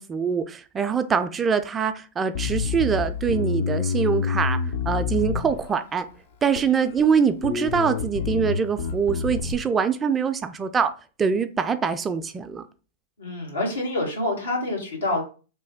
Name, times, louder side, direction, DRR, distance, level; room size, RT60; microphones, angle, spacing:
voice 1, 0.0-4.6 4.8-6.1 6.4-10.9 11.2-12.6, right 6 dB, 20° right, 0.3 m, -24 dB
Bass guitar, 2.3-5.9 6.5-7.1 7.4-9.5, left 6 dB, 65° left, 0.5 m, -27 dB
voice 2, 13.2-15.2, left 2 dB, 90° left, 1.4 m, -27 dB
3.1 x 2.2 x 3.4 m
hypercardioid pair, 115°, 0 cm